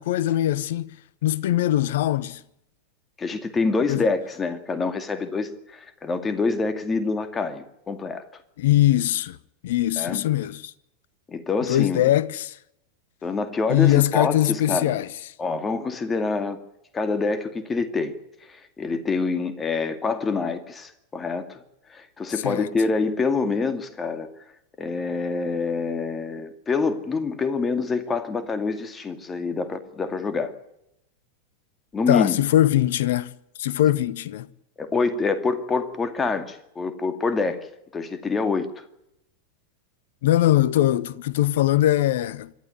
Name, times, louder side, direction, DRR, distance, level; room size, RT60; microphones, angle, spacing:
voice 1, 0.0-2.4 3.9-4.0 8.6-9.4 9.6-10.7 11.7-12.6 13.7-15.1 22.4-22.7 32.1-33.3 33.6-34.5 40.2-42.5, left 13 dB, 55° left, 0.9 m, -21 dB
voice 2, 3.2-8.2 10.0-10.2 11.3-12.1 13.2-14.9 15.4-16.6 16.9-21.6 21.9-24.3 24.8-30.5 31.9-32.4 34.8-37.6 37.9-38.9, left 4 dB, 15° left, 2.2 m, -26 dB
26.5 x 12.5 x 9.4 m
figure-of-eight pair, 90°, 0 cm